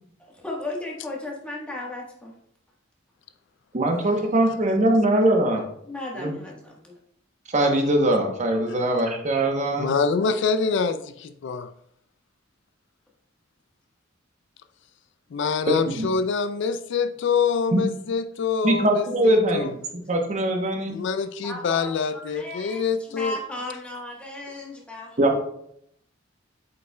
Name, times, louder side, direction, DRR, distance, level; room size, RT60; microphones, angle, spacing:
voice 1, 0.3-2.3 5.8-6.7 21.4-25.4, left 2 dB, 5° left, -3 dB, 1.2 m, -35 dB
voice 2, 3.7-5.6 6.2-6.3 7.5-9.9 15.8-16.1 17.7-17.8 18.6-19.7 20.1-21.0 25.2-25.4, right 1 dB, 35° right, 3 dB, 0.9 m, -21 dB
voice 3, 9.8-11.7 15.3-19.7 20.9-23.4, left 5 dB, 60° left, 11 dB, 0.3 m, -25 dB
8.0 x 5.3 x 2.2 m, 0.71 s
head